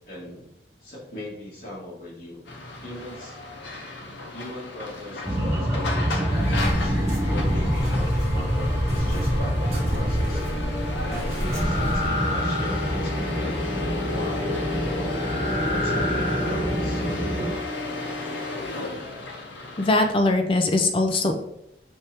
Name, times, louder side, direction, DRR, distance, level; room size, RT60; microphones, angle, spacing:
voice 1, 0.1-0.4 0.8-2.4 2.8-3.4 4.3-7.0 7.2-10.4 11.0-13.6 14.1-17.0, left 1 dB, 50° left, -5 dB, 1.7 m, -39 dB
sound 1, 2.5-20.1, left 3 dB, 85° left, 0.8 m, -33 dB
sound 2, 5.2-17.5, equal, 15° right, 0.7 m, -26 dB
sound 3, 6.3-12.1, left 1 dB, 35° right, 1.3 m, -30 dB
voice 2, 19.8-21.4, left 2 dB, 30° left, 5 dB, 0.4 m, -21 dB
5.1 x 3.3 x 2.8 m, 0.81 s
head